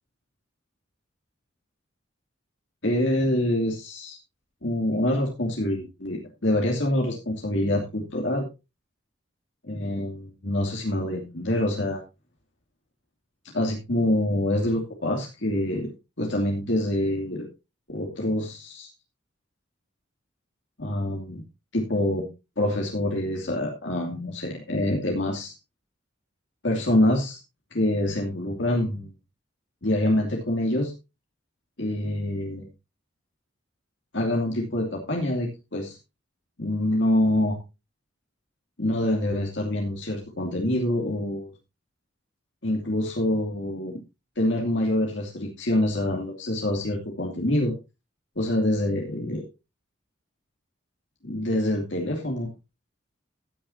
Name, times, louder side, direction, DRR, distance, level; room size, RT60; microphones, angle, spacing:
voice 1, 2.8-4.2 4.6-8.5 9.6-12.0 13.5-15.9 16.2-17.5 17.9-18.9 20.8-21.4 21.7-22.3 22.6-25.5 26.6-27.4 27.7-29.1 29.8-30.9 31.8-32.7 34.1-36.0 36.6-37.6 38.8-41.5 42.6-44.0 44.4-47.7 48.4-49.4 51.2-52.5, left 1 dB, 65° left, 0 dB, 2.7 m, -26 dB
15.5 x 9.7 x 2.8 m, 0.26 s
head